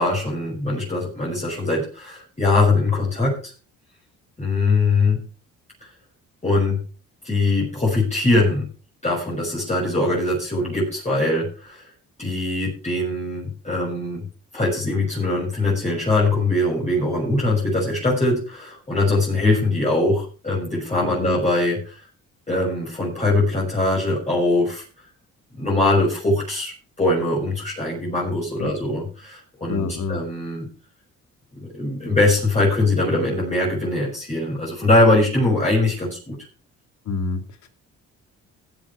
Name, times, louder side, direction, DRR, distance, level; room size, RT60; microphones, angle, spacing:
voice 1, 0.0-3.5 4.4-5.2 5.8-5.9 6.4-6.8 7.2-8.7 9.0-11.8 12.2-14.2 14.5-22.0 22.5-24.8 25.5-30.7 31.6-36.4, left 2 dB, 25° left, -5 dB, 6.4 m, -22 dB
voice 2, 28.6-29.0 29.7-30.2 37.1-37.4, left 4 dB, 70° left, 7 dB, 2.4 m, -27 dB
17.0 x 7.6 x 4.7 m, 0.36 s
cardioid pair, 90°, 30 cm